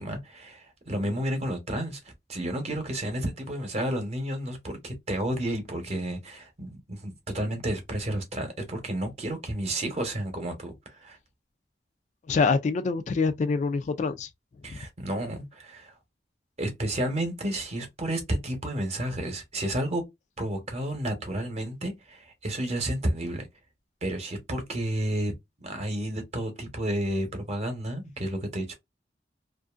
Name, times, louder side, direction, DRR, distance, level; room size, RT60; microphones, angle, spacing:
voice 1, 0.0-11.2 14.6-15.9 16.6-20.0 20.4-23.5 24.0-25.3 25.6-28.7, right 1 dB, 40° right, 0.9 m, -31 dB
voice 2, 12.3-14.3 14.7-14.8, left 4 dB, 40° left, 0.3 m, -25 dB
2.5 x 2.5 x 2.4 m
head